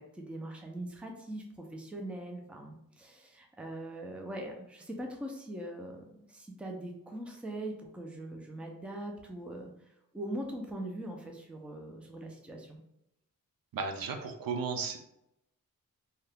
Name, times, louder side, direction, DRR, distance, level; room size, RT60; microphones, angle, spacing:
voice 1, 0.0-9.7 10.1-12.8, right 1 dB, 5° right, 1 dB, 0.4 m, -41 dB
voice 2, 13.7-15.0, right 5 dB, 80° right, 5 dB, 0.5 m, -34 dB
2.8 x 2.3 x 3.3 m, 0.81 s
wide cardioid pair, 155°, 34 cm